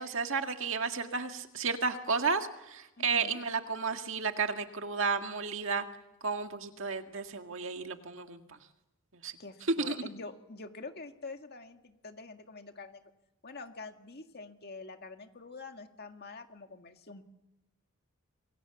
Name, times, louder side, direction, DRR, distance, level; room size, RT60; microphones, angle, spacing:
voice 1, 0.0-5.8 6.2-8.6 9.2-9.3 9.8-10.0, right 5 dB, 60° right, 5 dB, 1.9 m, -32 dB
voice 2, 3.0-3.4 9.4-13.0 13.4-17.2, left 3 dB, 45° left, 5 dB, 1.9 m, -46 dB
28.0 x 22.5 x 7.2 m, 0.95 s
head